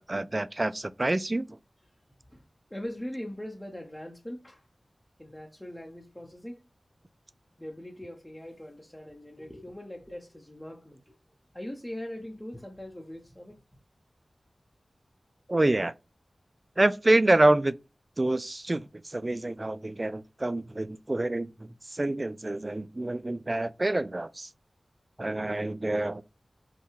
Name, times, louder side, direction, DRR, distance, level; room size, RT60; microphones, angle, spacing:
voice 1, 0.0-1.5 15.5-15.9 16.8-17.7 18.2-18.8 19.1-21.5 21.9-24.5 25.2-26.2, right 2 dB, 35° right, 0.3 m, -26 dB
voice 2, 2.7-4.6 5.2-6.7 7.6-11.2 11.5-13.6, left 1 dB, 10° left, 0.9 m, -41 dB
5.6 x 2.3 x 3.0 m
wide cardioid pair, 50°, 0 cm